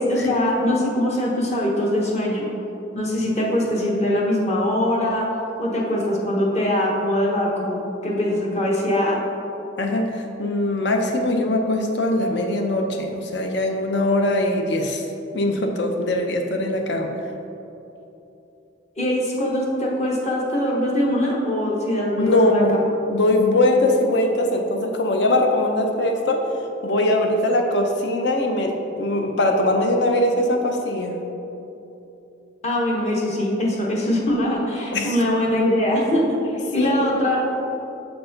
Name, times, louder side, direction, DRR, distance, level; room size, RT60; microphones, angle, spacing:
voice 1, 0.1-2.5 2.9-5.3 5.6-9.2 19.0-22.6 32.6-36.2 36.7-37.5, left 1 dB, 35° left, -3 dB, 0.9 m, -22 dB
voice 2, 9.8-15.1 15.3-17.1 22.2-22.8 23.1-26.5 26.8-31.2 34.9-35.2 36.8-36.9, left 1 dB, 65° left, 3 dB, 0.6 m, -21 dB
6.6 x 4.6 x 3.9 m, 2.9 s
head